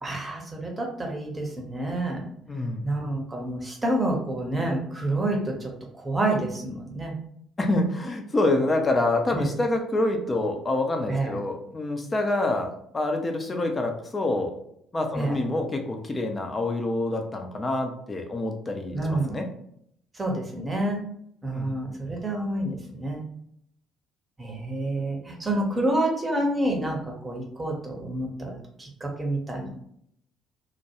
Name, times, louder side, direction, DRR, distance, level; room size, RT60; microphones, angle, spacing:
voice 1, 0.0-2.3 2.8-7.2 9.3-9.5 11.1-11.4 15.1-15.4 18.9-19.4 20.1-21.0 21.4-23.2 24.4-29.8, right 1 dB, 20° right, 0 dB, 0.8 m, -28 dB
voice 2, 2.5-2.9 7.6-14.5 14.9-19.5 21.5-21.8, left 2 dB, 25° left, 3 dB, 0.6 m, -27 dB
2.2 x 2.2 x 2.9 m, 0.69 s
figure-of-eight pair, 50°, 0 cm